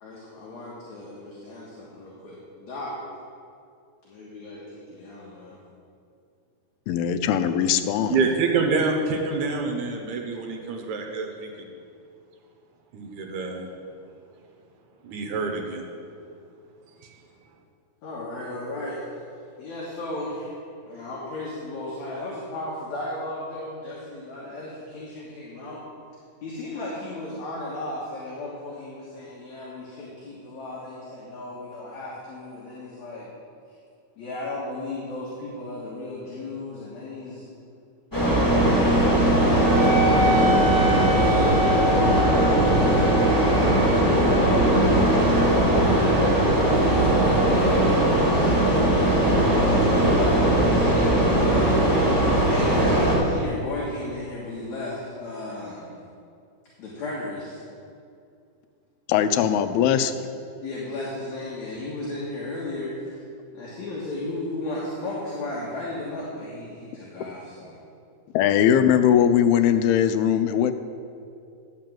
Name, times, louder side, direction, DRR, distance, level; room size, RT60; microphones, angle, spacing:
voice 1, 0.0-2.9 4.0-5.6 18.0-19.0 19.6-20.5 20.9-25.8 26.4-33.3 34.2-37.4 38.1-38.8 39.6-40.9 42.5-45.8 46.7-47.8 48.3-55.9 56.8-57.6 60.6-63.2 63.5-67.8, left 2 dB, 60° left, -6 dB, 2.5 m, -34 dB
voice 2, 6.9-8.3 59.1-60.1 68.3-70.7, left 9 dB, 90° left, 9 dB, 2.6 m, -20 dB
voice 3, 8.1-11.7 12.9-13.7 15.0-15.9 17.0-17.2, right 4 dB, 70° right, 2 dB, 1.8 m, -27 dB
sound 1, 38.1-53.2, right 1 dB, 10° left, 1.4 m, -19 dB
Wind instrument woodwind instrument, 39.6-48.6, equal, 35° right, 1.3 m, -29 dB
10.5 x 5.8 x 7.5 m, 2.4 s
omnidirectional pair, 4.3 m